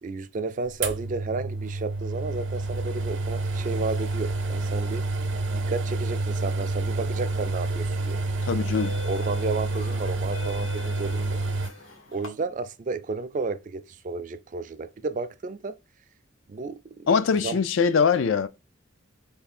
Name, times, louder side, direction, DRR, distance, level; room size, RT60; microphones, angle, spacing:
voice 1, 0.0-5.1 5.5-8.2 9.0-11.4 12.1-15.7 16.5-17.1 17.4-17.6, right 3 dB, 40° right, 0.4 m, -32 dB
sound 1, 0.8-11.7, right 2 dB, 60° right, 0.8 m, -28 dB
sound 2, 7.5-7.7 8.5-12.3, left 3 dB, 90° left, 1.4 m, -42 dB
voice 2, 8.4-9.0 17.1-18.5, left 6 dB, 70° left, 0.4 m, -22 dB
3.5 x 3.1 x 4.2 m
head